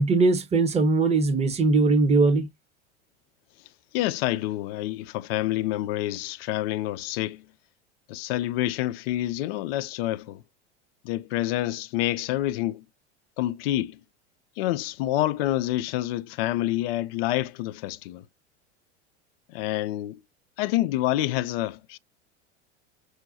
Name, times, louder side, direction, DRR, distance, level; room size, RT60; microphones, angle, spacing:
voice 1, 0.0-2.5, right 3 dB, 20° right, 1.0 m, -20 dB
voice 2, 3.9-7.4 8.1-10.4 11.0-12.8 13.4-14.0 14.6-18.2 19.5-20.2 20.6-22.0, left 15 dB, 60° left, 0.5 m, -27 dB
6.3 x 2.2 x 2.6 m
hypercardioid pair, 80°, 35 cm